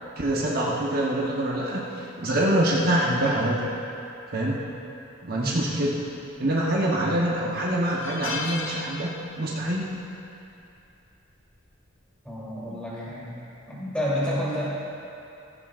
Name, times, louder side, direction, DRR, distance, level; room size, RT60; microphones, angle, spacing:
voice 1, 0.2-3.6 4.3-4.6 5.2-5.9 6.4-9.1 9.4-9.9, right 1 dB, 45° right, -4 dB, 1.2 m, -25 dB
voice 2, 5.4-5.7 12.2-13.3 13.7-14.6, equal, 5° left, -8 dB, 3.2 m, -30 dB
sound 1, 6.7-7.0 7.3-7.4 7.8-9.7 9.9-10.2 11.4-11.7, left 4 dB, 70° left, 0.9 m, -36 dB
15.5 x 15.0 x 2.6 m, 2.7 s
head